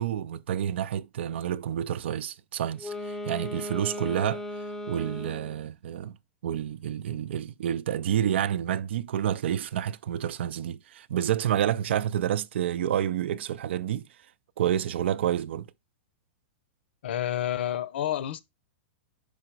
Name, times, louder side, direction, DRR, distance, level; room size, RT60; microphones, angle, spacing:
voice 1, 0.0-4.4 4.9-6.1 6.4-14.1 14.6-15.7, right 10 dB, 70° right, 0.5 m, -29 dB
Wind instrument woodwind instrument, 2.7-5.7, left 1 dB, 5° left, 0.5 m, -36 dB
voice 2, 17.0-18.4, left 11 dB, 65° left, 0.7 m, -29 dB
5.1 x 4.9 x 4.5 m
supercardioid pair, 170°, 6 cm